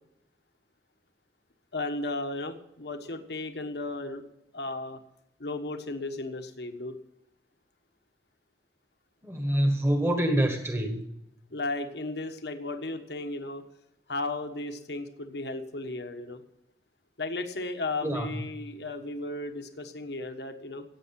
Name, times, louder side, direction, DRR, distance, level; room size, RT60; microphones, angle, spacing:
voice 1, 1.7-4.2 4.5-5.0 5.4-6.9 11.5-13.6 14.1-16.4 17.2-20.8, left 2 dB, 70° left, 6 dB, 1.4 m, -35 dB
voice 2, 9.2-11.0 18.0-18.3, right 1 dB, 15° right, 4 dB, 1.4 m, -26 dB
16.0 x 8.7 x 5.9 m, 0.82 s
head